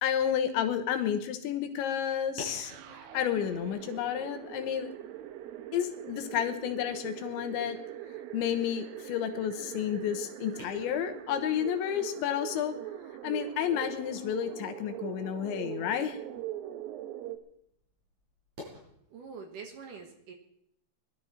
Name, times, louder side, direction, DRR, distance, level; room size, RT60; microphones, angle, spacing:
voice 1, 0.0-2.7 3.1-4.9 5.7-7.8 8.3-12.8 13.2-16.2, left 9 dB, 80° left, 7 dB, 3.4 m, -31 dB
sound 1, 2.1-18.8, left 1 dB, 40° right, 6.2 m, -54 dB
sound 2, 2.4-17.4, right 12 dB, 85° right, 2.1 m, -42 dB
voice 2, 19.1-20.3, right 5 dB, 60° right, 4 dB, 2.4 m, -45 dB
20.5 x 12.0 x 4.4 m, 0.74 s
omnidirectional pair, 5.3 m